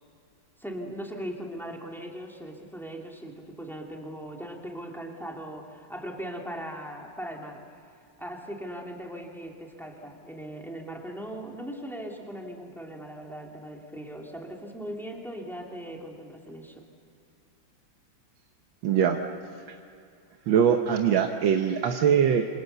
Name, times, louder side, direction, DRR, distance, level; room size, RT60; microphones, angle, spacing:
voice 1, 0.6-7.6 8.2-16.8, equal, ahead, 0 dB, 2.7 m, -39 dB
voice 2, 18.8-19.2 20.5-22.5, right 8 dB, 80° right, 5 dB, 1.7 m, -22 dB
27.0 x 26.0 x 6.8 m, 2.4 s
omnidirectional pair, 2.1 m